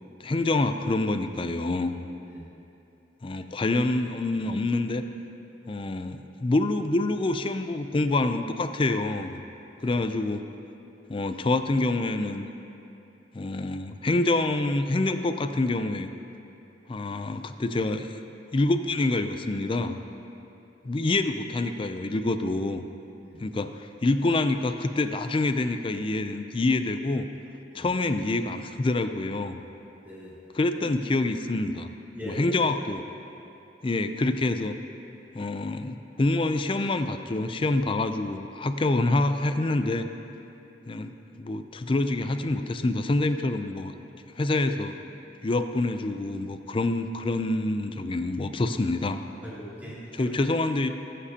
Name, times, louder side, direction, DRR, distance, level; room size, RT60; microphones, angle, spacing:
voice 1, 0.2-1.9 3.2-5.0 5.7-9.4 9.8-10.4 11.1-12.5 13.3-16.1 16.9-18.1 18.5-20.0 20.8-22.8 23.4-27.3 27.7-29.6 30.5-31.9 32.2-33.0 33.8-34.7 35.3-40.1 40.9-43.9 44.4-44.9 45.4-49.2 50.2-50.9, left 2 dB, 30° left, 8 dB, 0.4 m, -26 dB
voice 2, 30.0-30.4 32.1-32.6 43.8-43.9 49.4-50.4, equal, 10° right, -9 dB, 2.5 m, -41 dB
20.5 x 7.4 x 2.8 m, 2.8 s
head